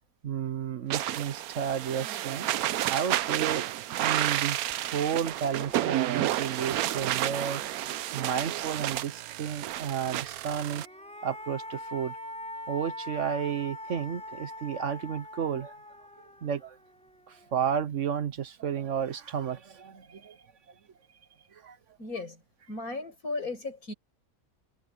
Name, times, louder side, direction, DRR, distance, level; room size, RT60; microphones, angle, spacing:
voice 1, 0.2-2.5 2.9-3.7 4.0-7.6 8.1-10.8 11.2-12.2 12.7-15.7 16.4-16.8 17.3-20.4 21.5-21.8, right 8 dB, 60° right, 1.1 m, -32 dB
sound 1, 0.9-10.9, right 13 dB, 85° right, 1.1 m, -31 dB
sound 2, 4.7-4.8 5.2-8.8 10.5-17.8, left 1 dB, 5° left, 3.8 m, -44 dB
voice 2, 22.0-22.4 22.7-23.9, left 3 dB, 75° left, 6.6 m, -35 dB
omnidirectional pair, 1.5 m